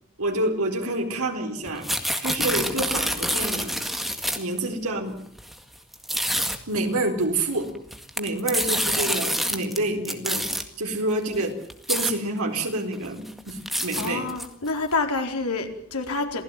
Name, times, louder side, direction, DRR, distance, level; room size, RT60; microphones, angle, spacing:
voice 1, 0.2-1.9 2.2-3.8 4.4-5.2 6.7-7.7 8.2-10.5 10.8-11.6 11.9-14.3, right 2 dB, 85° right, 3 dB, 4.1 m, -27 dB
sound 1, 1.7-4.6 5.4-5.5 5.9-6.6 7.7-9.8 10.0-10.6 11.3-11.4 11.7-12.1 12.6-12.7 13.0-14.7, equal, ahead, 1.8 m, -27 dB
voice 2, 13.9-16.4, left 3 dB, 90° left, 4 dB, 4.2 m, -28 dB
27.5 x 17.0 x 9.1 m, 0.66 s
head